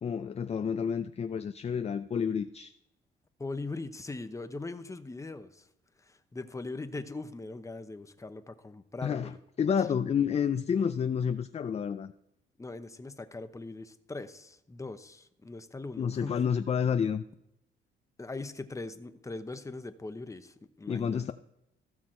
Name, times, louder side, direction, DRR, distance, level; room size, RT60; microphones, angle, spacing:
voice 1, 0.0-2.7 9.0-12.1 16.0-17.2 20.9-21.3, left 7 dB, 30° left, 0.4 m, -29 dB
voice 2, 3.4-5.7 6.0-9.4 12.6-16.4 18.2-21.3, left 3 dB, 15° left, 0.8 m, -41 dB
15.0 x 6.0 x 4.4 m
cardioid pair, 90°, 20 cm